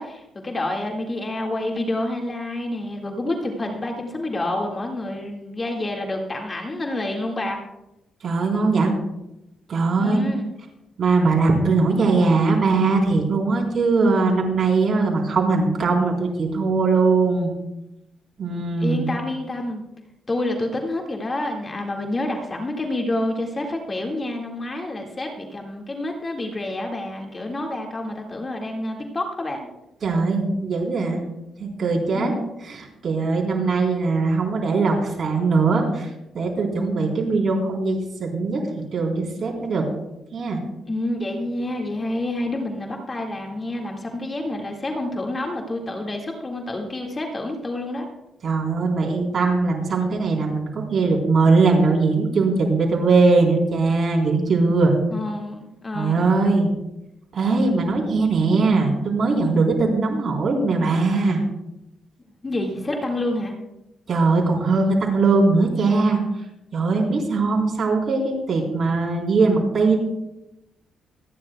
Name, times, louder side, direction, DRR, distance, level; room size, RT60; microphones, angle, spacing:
voice 1, 0.0-7.6 10.0-10.5 18.8-19.8 20.3-29.6 32.1-32.4 40.6-48.1 55.1-56.3 62.4-63.6, left 1 dB, 30° left, 1 dB, 1.9 m, -28 dB
voice 2, 8.2-8.9 9.7-10.3 11.0-17.5 18.4-19.0 30.0-31.2 31.6-32.3 32.6-36.1 36.3-38.6 38.9-39.8 40.3-40.6 48.4-54.9 55.9-56.7 57.3-61.4 64.1-66.2 66.7-70.0, right 3 dB, 50° right, 0 dB, 3.8 m, -20 dB
25.5 x 10.5 x 2.3 m, 0.90 s
cardioid pair, 80°, 0 cm